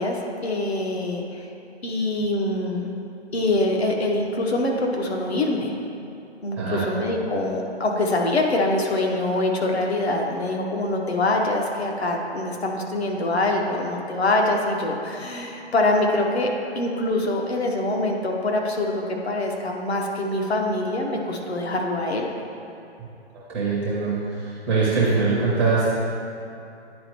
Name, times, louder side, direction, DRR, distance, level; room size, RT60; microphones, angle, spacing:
voice 1, 0.0-1.5 1.8-2.9 3.3-5.7 6.4-16.5 16.7-22.3, left 2 dB, 70° left, 1 dB, 1.1 m, -24 dB
voice 2, 23.3-25.9, right 4 dB, 5° right, -8 dB, 0.5 m, -23 dB
9.9 x 4.3 x 3.1 m, 2.7 s
figure-of-eight pair, 135°, 34 cm